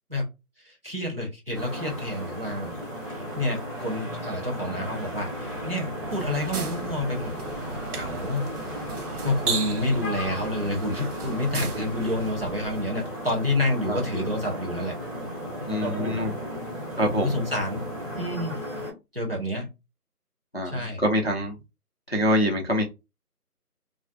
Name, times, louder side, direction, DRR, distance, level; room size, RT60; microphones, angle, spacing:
voice 1, 0.6-2.7 3.1-7.3 7.6-9.0 9.2-15.0 15.7-16.2 17.1-17.8 18.2-18.5 19.1-19.7 20.6-21.0, left 1 dB, 40° right, -2 dB, 0.7 m, -29 dB
sound 1, 1.5-18.9, equal, ahead, 0.7 m, -35 dB
sound 2, 6.1-12.8, right 5 dB, 70° right, 0.6 m, -36 dB
voice 2, 15.7-16.3 17.0-17.4 20.5-21.6 22.1-22.8, equal, 45° left, 1 dB, 0.4 m, -25 dB
2.4 x 2.3 x 2.2 m, 0.24 s
figure-of-eight pair, 170°, 46 cm